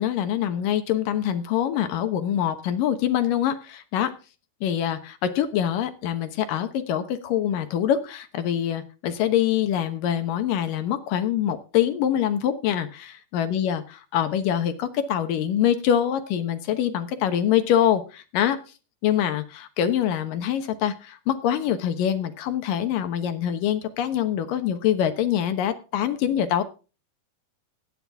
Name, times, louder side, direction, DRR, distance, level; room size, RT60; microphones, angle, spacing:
voice 1, 0.0-4.1 4.6-18.6 19.0-26.6, left 10 dB, 70° left, 9 dB, 2.5 m, -24 dB
17.0 x 10.0 x 3.5 m, 0.33 s
omnidirectional pair, 4.4 m